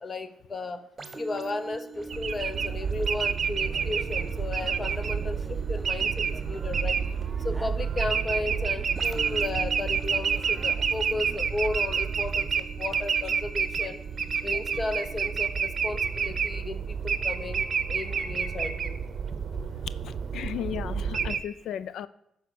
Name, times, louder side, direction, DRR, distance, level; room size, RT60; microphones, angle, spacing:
voice 1, 0.0-0.8 1.2-7.0 7.4-14.0 14.4-19.0, left 2 dB, 30° left, 11 dB, 0.9 m, -34 dB
sound 1, 1.0-18.5 19.0-19.2, right 4 dB, 30° right, 1.1 m, -47 dB
sound 2, 1.9-11.5, right 1 dB, 10° right, 0.7 m, -47 dB
sound 3, 2.1-21.4, right 6 dB, 50° right, 0.7 m, -29 dB
voice 2, 20.0-22.1, left 9 dB, 70° left, 16 dB, 0.3 m, -35 dB
11.5 x 4.3 x 6.9 m, 0.81 s
cardioid pair, 90°, 0 cm